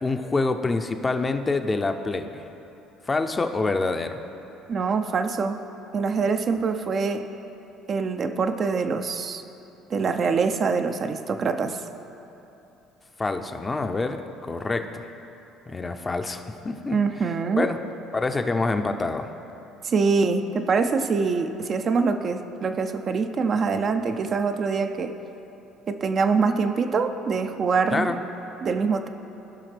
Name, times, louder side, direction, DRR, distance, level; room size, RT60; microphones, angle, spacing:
voice 1, 0.0-2.5 3.1-4.2 13.2-15.1 15.7-17.0 17.6-17.8 18.1-19.3 27.9-28.2, left 3 dB, 25° left, 7 dB, 0.6 m, -26 dB
voice 2, 4.7-5.6 5.9-7.3 7.9-9.4 9.9-11.8 16.9-17.7 19.8-25.1 25.9-28.1 28.6-29.1, right 5 dB, 45° right, 7 dB, 0.5 m, -24 dB
16.5 x 5.7 x 3.4 m, 3.0 s
hypercardioid pair, 65°, 0 cm